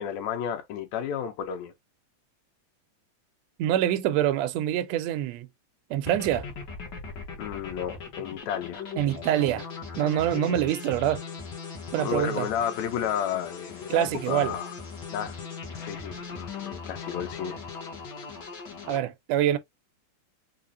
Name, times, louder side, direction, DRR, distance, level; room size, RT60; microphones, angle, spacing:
voice 1, 0.0-1.7 7.4-8.9 10.3-10.6 12.0-14.8 15.1-15.5 15.8-17.6, left 9 dB, 70° left, 2.0 m, -32 dB
voice 2, 3.6-5.5 5.9-6.5 9.0-9.7 10.0-11.2 11.9-12.5 13.9-14.6 18.9-19.6, right 11 dB, 80° right, 1.6 m, -25 dB
sound 1, 6.0-19.0, left 5 dB, 55° left, 1.2 m, -39 dB
5.0 x 2.4 x 2.6 m
omnidirectional pair, 3.6 m